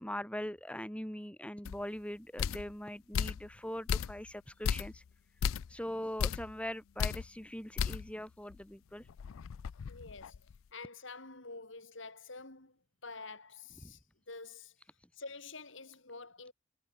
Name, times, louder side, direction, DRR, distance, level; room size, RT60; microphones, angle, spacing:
voice 1, 0.0-5.0 5.7-9.0 13.8-13.9, left 1 dB, 5° left, 2.6 m, -41 dB
sound 1, 1.6-1.8 2.4-2.7 3.1-3.5 3.9-4.3 4.6-5.0 5.4-5.7 6.2-6.5 7.0-7.3 7.8-8.1 8.5-8.6 9.1-10.6, left 7 dB, 80° left, 0.4 m, -35 dB
voice 2, 9.9-14.0 14.3-14.8 15.1-16.5, left 3 dB, 65° left, 5.4 m, -48 dB
head